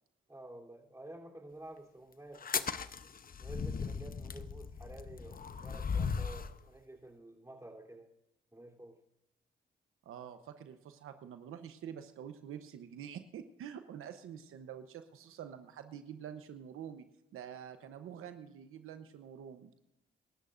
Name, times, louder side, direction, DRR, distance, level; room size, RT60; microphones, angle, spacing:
voice 1, 0.3-2.8 3.4-8.1 8.5-9.0, right 1 dB, 15° right, 0 dB, 3.4 m, -51 dB
sound 1, 2.4-6.6, left 5 dB, 45° left, 0.8 m, -37 dB
voice 2, 10.1-17.1 17.3-19.7, right 9 dB, 85° right, 9 dB, 0.9 m, -47 dB
26.0 x 13.0 x 2.6 m, 0.88 s
cardioid pair, 60°, 21 cm